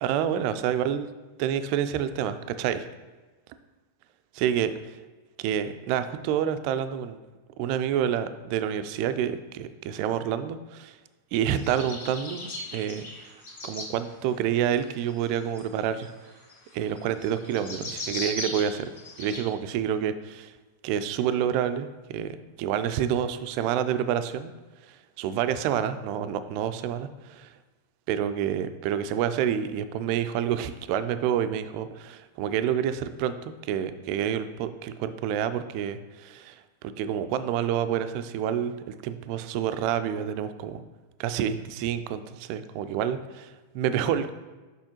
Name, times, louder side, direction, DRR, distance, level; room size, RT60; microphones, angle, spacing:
voice 1, 0.0-1.1 1.4-2.9 4.3-5.0 5.4-7.2 7.6-11.0 11.3-13.4 13.6-16.1 16.7-18.9 19.2-20.5 20.8-21.9 22.1-24.5 24.9-27.5 28.1-40.8 41.2-44.3, right 9 dB, 45° right, 11 dB, 0.4 m, -28 dB
sound 1, 11.5-13.9 14.6-19.4, left 2 dB, 60° left, 1.8 m, -37 dB
6.4 x 5.5 x 2.9 m, 1.3 s
figure-of-eight pair, 90°, 0 cm